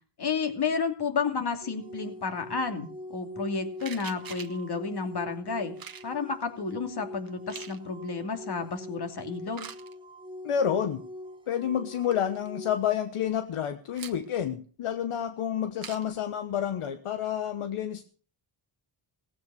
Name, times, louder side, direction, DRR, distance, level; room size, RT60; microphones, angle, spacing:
voice 1, 0.2-5.7 6.0-9.7, left 5 dB, 50° left, 5 dB, 2.9 m, -31 dB
sound 1, 1.6-12.8, left 1 dB, 10° right, 1.4 m, -43 dB
sound 2, 3.8-4.6 5.8-6.1 7.3-7.8 9.5-9.9 11.7-11.8 12.0-12.5 14.0-14.4 15.8-16.1, right 7 dB, 45° right, 1.2 m, -43 dB
voice 2, 10.4-11.0 11.5-18.0, left 9 dB, 85° left, 9 dB, 1.3 m, -29 dB
17.5 x 8.8 x 6.9 m, 0.42 s
wide cardioid pair, 110°, 50 cm